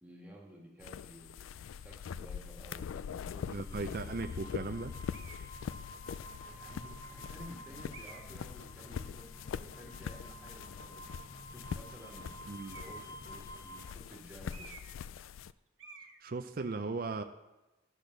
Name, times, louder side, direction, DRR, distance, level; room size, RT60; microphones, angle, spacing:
voice 1, 0.0-1.6 1.8-4.2 6.1-11.1 11.5-12.3 12.7-14.7, equal, 5° right, -2 dB, 1.7 m, -53 dB
sound 1, 0.8-15.5, left 7 dB, 90° left, 0.3 m, -43 dB
sound 2, 2.9-13.9, right 1 dB, 15° left, 0.6 m, -51 dB
voice 2, 3.5-4.9 12.5-12.8 16.2-17.2, right 3 dB, 45° right, 6 dB, 0.4 m, -37 dB
sound 3, 5.1-5.5 6.3-6.4 7.9-8.4 12.6-13.2 14.5-15.1 15.3-15.5 15.8-16.2, right 4 dB, 80° right, 1.3 m, -52 dB
10.5 x 6.3 x 6.5 m, 1.0 s
head